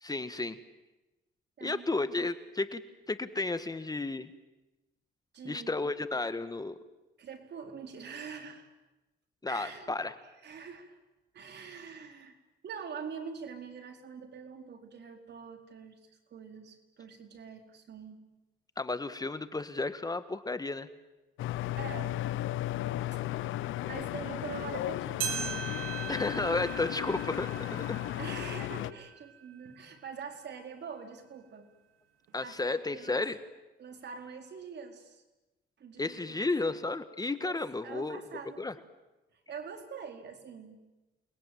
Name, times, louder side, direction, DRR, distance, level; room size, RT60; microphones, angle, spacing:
voice 1, 0.0-0.6 1.6-2.8 3.1-4.3 5.4-6.8 9.4-10.1 18.8-20.9 26.1-28.0 32.3-33.4 36.0-38.2 38.6-38.7, left 3 dB, 20° left, 12 dB, 1.4 m, -33 dB
voice 2, 1.6-1.9 5.3-5.8 7.2-8.7 9.5-10.0 10.2-11.0 11.3-12.4 12.6-18.3 21.8-22.2 23.1-23.2 23.9-25.7 28.2-31.7 32.4-33.2 33.8-35.2 35.8-36.5 37.4-37.6 37.8-38.6 39.3-40.8, right 6 dB, 60° right, 5 dB, 4.3 m, -44 dB
sound 1, 21.4-28.9, left 14 dB, 85° left, 0.9 m, -35 dB
sound 2, 25.2-29.8 30.3-30.4 31.2-31.3 32.3-32.4, right 8 dB, 90° right, 4.8 m, -40 dB
29.0 x 21.0 x 9.3 m, 1.0 s
cardioid pair, 90°, 20 cm